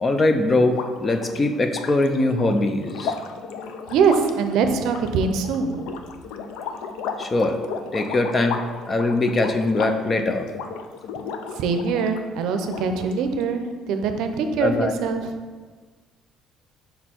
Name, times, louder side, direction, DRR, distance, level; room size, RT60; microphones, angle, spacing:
voice 1, 0.0-3.2 7.2-7.6 7.9-10.5 14.6-15.0, left 2 dB, 20° left, 7 dB, 0.4 m, -22 dB
sound 1, 0.6-12.2 12.6-13.4, left 6 dB, 90° left, 0.4 m, -34 dB
voice 2, 3.9-5.8 11.6-15.3, right 5 dB, 70° right, 7 dB, 0.5 m, -23 dB
5.2 x 4.4 x 4.3 m, 1.4 s
cardioid pair, 160°, 0 cm